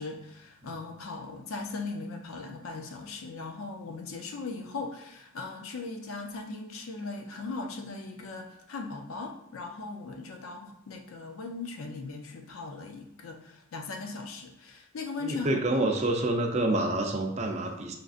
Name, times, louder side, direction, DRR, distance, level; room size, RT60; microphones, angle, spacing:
voice 1, 0.0-15.6, left 3 dB, 90° left, 3 dB, 0.5 m, -39 dB
voice 2, 15.2-17.9, right 2 dB, 35° right, 3 dB, 0.5 m, -27 dB
6.3 x 2.6 x 2.4 m, 0.78 s
head